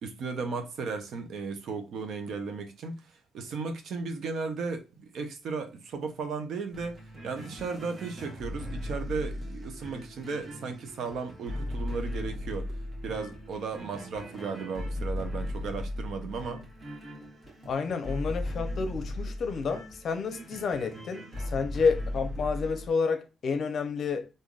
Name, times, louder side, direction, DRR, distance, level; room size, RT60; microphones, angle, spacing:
voice 1, 0.0-3.0 3.3-7.0 7.2-12.7 13.0-16.6, right 4 dB, 70° right, 0.7 m, -35 dB
sound 1, 6.7-22.9, left 1 dB, 35° right, 1.2 m, -37 dB
voice 2, 17.7-24.3, left 5 dB, 55° left, 0.6 m, -30 dB
3.7 x 2.6 x 2.3 m
cardioid pair, 90°, 0 cm